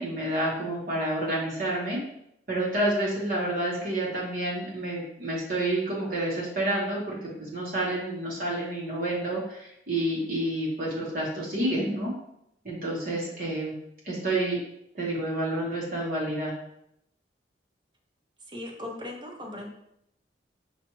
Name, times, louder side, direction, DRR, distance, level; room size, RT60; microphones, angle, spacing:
voice 1, 0.0-2.0 2.5-12.1 12.6-13.8 14.0-14.6 14.9-16.5, right 1 dB, 50° right, -5 dB, 1.0 m, -29 dB
voice 2, 18.5-19.7, left 1 dB, 25° right, 0 dB, 0.7 m, -38 dB
5.8 x 2.4 x 3.0 m, 0.77 s
head